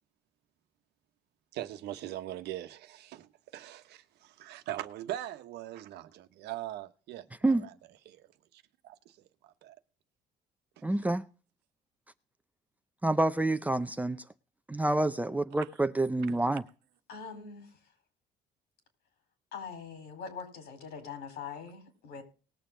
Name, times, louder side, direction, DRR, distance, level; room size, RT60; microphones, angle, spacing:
voice 1, 1.5-7.7 8.1-8.3 8.5-8.9 9.4-9.8 10.8-10.9, right 13 dB, 80° right, 1.1 m, -41 dB
voice 2, 10.8-11.2 13.0-14.2 14.7-16.6, right 2 dB, 10° right, 0.6 m, -28 dB
voice 3, 17.1-17.7 19.5-22.2, left 6 dB, 75° left, 4.4 m, -43 dB
19.5 x 7.0 x 3.9 m
cardioid pair, 110°, 17 cm